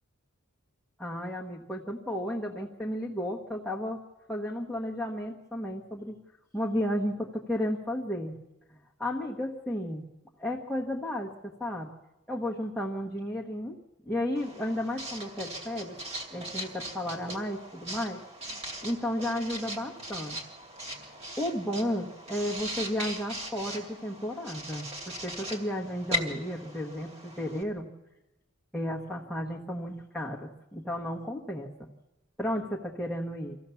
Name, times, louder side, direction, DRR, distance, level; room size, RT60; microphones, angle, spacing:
voice 1, 1.0-4.0 4.3-6.2 6.5-8.4 9.0-10.1 10.4-11.9 12.3-13.7 14.0-16.0 16.3-20.4 20.9-27.9 28.7-31.9 32.4-33.6, left 1 dB, ahead, -4 dB, 1.2 m, -33 dB
Writing, 14.3-27.6, equal, 30° right, 2.6 m, -39 dB
25.0 x 15.5 x 7.1 m, 1.0 s
head